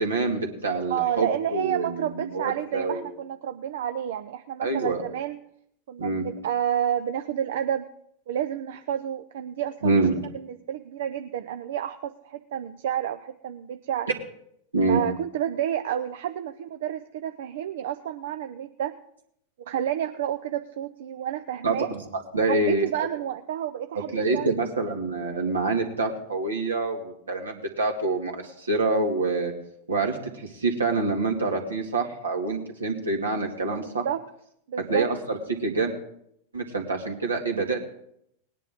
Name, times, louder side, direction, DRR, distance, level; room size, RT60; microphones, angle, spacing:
voice 1, 0.0-3.1 4.6-5.0 6.0-6.3 9.8-10.2 14.7-15.0 21.6-23.1 24.1-29.5 29.9-34.0 34.9-35.9 36.5-37.8, right 3 dB, 85° right, 2 dB, 2.1 m, -26 dB
voice 2, 0.9-5.4 5.9-7.9 8.3-10.0 10.7-14.1 14.9-18.9 19.7-21.9 22.5-24.5 33.8-34.2 34.7-35.1, right 10 dB, 65° right, 9 dB, 0.6 m, -30 dB
19.5 x 9.9 x 3.6 m, 0.75 s
figure-of-eight pair, 95°, 0 cm